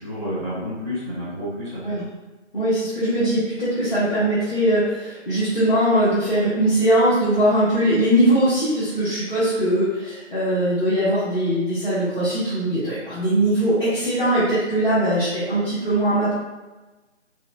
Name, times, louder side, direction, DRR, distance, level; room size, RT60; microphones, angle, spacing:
voice 1, 0.0-2.0, equal, 25° left, -12 dB, 0.8 m, -30 dB
voice 2, 2.5-16.3, right 1 dB, 45° left, -12 dB, 1.1 m, -21 dB
3.0 x 2.6 x 2.2 m, 1.2 s
figure-of-eight pair, 165°, 37 cm